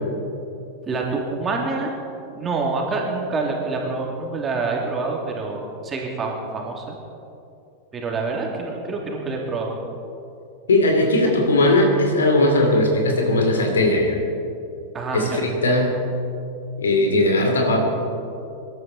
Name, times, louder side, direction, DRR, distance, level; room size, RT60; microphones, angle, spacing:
voice 1, 0.9-2.0 2.3-7.0 7.9-9.8 11.2-11.3 14.9-15.4, right 3 dB, 20° right, -1 dB, 2.9 m, -26 dB
voice 2, 10.7-14.2 15.1-16.0 16.8-17.8, left 1 dB, 70° left, 3 dB, 2.7 m, -18 dB
25.0 x 12.5 x 4.3 m, 2.7 s
figure-of-eight pair, 90°, 0 cm